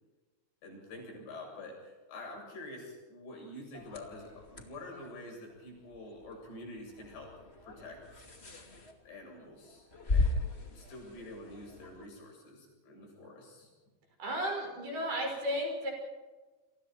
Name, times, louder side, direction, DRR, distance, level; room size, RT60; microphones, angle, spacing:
voice 1, 0.6-8.2 9.0-13.7, left 2 dB, 70° left, 0 dB, 9.8 m, -47 dB
sound 1, 3.7-12.1, left 3 dB, 30° left, 1.2 m, -38 dB
voice 2, 14.2-15.9, equal, 55° right, 1 dB, 7.7 m, -34 dB
29.5 x 25.5 x 4.6 m, 1.3 s
omnidirectional pair, 5.3 m